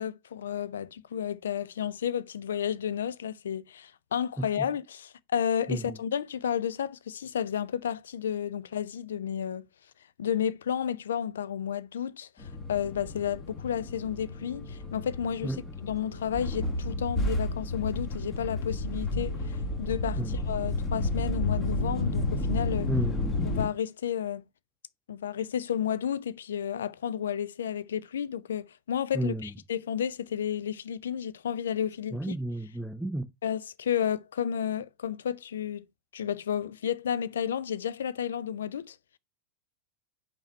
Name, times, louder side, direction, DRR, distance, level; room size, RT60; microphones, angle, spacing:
voice 1, 0.0-9.7 10.2-22.9 23.4-24.4 25.1-32.3 33.4-35.8 36.1-39.0, left 9 dB, 65° left, 0.5 m, -32 dB
sound 1, 12.4-23.7, left 2 dB, 25° left, 2.1 m, -31 dB
voice 2, 22.9-23.4 29.1-29.5 32.1-33.3, right 1 dB, ahead, 0.4 m, -32 dB
5.5 x 4.6 x 5.3 m
figure-of-eight pair, 90°, 0 cm